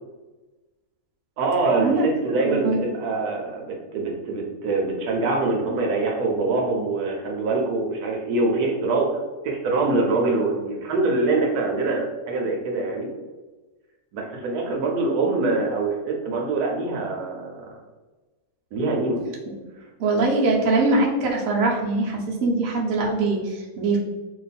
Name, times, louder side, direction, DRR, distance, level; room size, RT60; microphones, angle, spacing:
voice 1, 1.4-9.2 9.4-13.1 14.1-17.7 18.7-19.2, right 3 dB, 85° right, 0 dB, 1.2 m, -24 dB
voice 2, 2.4-2.9 20.0-24.0, right 2 dB, 65° right, -2 dB, 1.1 m, -22 dB
2.9 x 2.3 x 4.0 m, 1.2 s
omnidirectional pair, 1.6 m